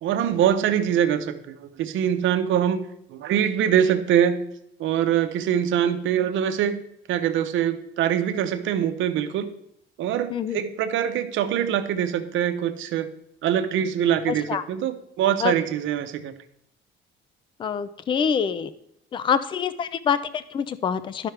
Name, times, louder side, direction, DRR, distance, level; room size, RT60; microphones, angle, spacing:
voice 1, 0.0-2.8 3.1-4.4 4.8-6.8 7.1-9.5 10.0-13.1 13.4-16.3, right 9 dB, 70° right, 9 dB, 0.8 m, -23 dB
voice 2, 10.3-10.6 14.3-14.6 15.4-15.5 17.6-18.7 19.1-21.3, left 7 dB, 25° left, 14 dB, 0.3 m, -25 dB
12.0 x 5.8 x 3.3 m, 0.76 s
cardioid pair, 160°, 21 cm